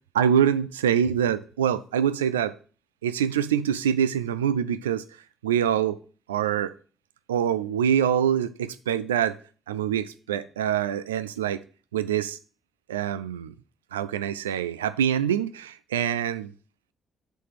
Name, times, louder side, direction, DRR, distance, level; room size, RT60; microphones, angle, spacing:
voice 1, 0.1-2.6 3.0-5.0 5.4-6.0 6.3-6.8 7.3-9.4 9.7-11.6 11.9-12.4 12.9-13.5 13.9-16.5, right 9 dB, 85° right, 0.3 m, -25 dB
8.1 x 4.1 x 6.7 m
figure-of-eight pair, 40°, 0 cm